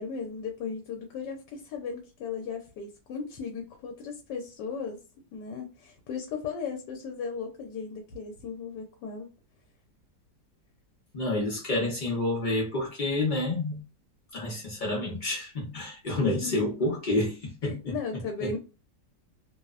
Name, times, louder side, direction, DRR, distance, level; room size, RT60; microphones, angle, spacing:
voice 1, 0.0-5.0 5.3-9.3 16.2-16.7 17.6-18.6, left 5 dB, 90° left, 1.2 m, -36 dB
voice 2, 11.1-13.8 14.3-18.0 18.4-18.5, left 2 dB, 60° left, 0.5 m, -29 dB
2.9 x 2.0 x 2.3 m
omnidirectional pair, 1.8 m